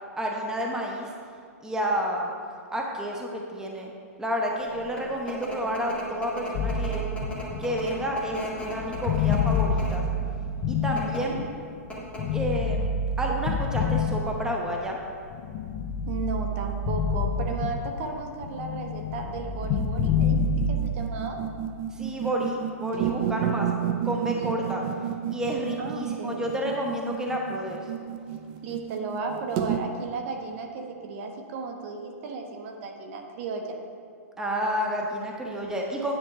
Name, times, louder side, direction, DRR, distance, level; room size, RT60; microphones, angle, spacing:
voice 1, 0.2-1.1 1.6-2.3 2.7-3.9 4.2-7.0 7.6-10.0 10.7-11.4 12.3-12.9 13.2-15.0 21.9-23.7 24.0-24.8 25.3-27.9 34.4-36.1, equal, 5° right, -1 dB, 0.9 m, -30 dB
sound 1, 4.7-19.9, equal, 15° left, 2.0 m, -39 dB
sound 2, 6.5-11.6 12.2-14.8 15.3-18.2 18.4-21.1, left 4 dB, 40° left, 0.6 m, -28 dB
voice 2, 10.9-11.5 16.1-21.4 24.3-24.6 25.8-26.4 28.6-33.8, right 4 dB, 50° right, 3 dB, 1.2 m, -35 dB
sound 3, 19.6-29.8, right 10 dB, 35° right, 0.5 m, -31 dB
9.8 x 4.4 x 5.6 m, 2.3 s
hypercardioid pair, 130°, 9 cm